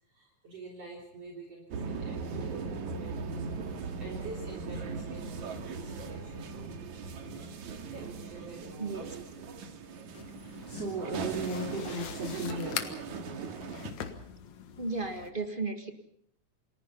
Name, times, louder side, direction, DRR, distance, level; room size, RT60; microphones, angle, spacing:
voice 1, 0.1-3.4 4.0-7.0 7.5-9.6 10.3-13.4, right 1 dB, 50° right, -1 dB, 4.5 m, -41 dB
sound 1, 1.7-13.9, right 5 dB, 65° right, 3.4 m, -39 dB
voice 2, 8.8-9.1 14.8-15.9, right 3 dB, 25° right, 8 dB, 1.3 m, -34 dB
sound 2, 10.1-15.3, left 8 dB, 65° left, 2.9 m, -43 dB
29.0 x 20.5 x 5.5 m, 0.69 s
omnidirectional pair, 3.6 m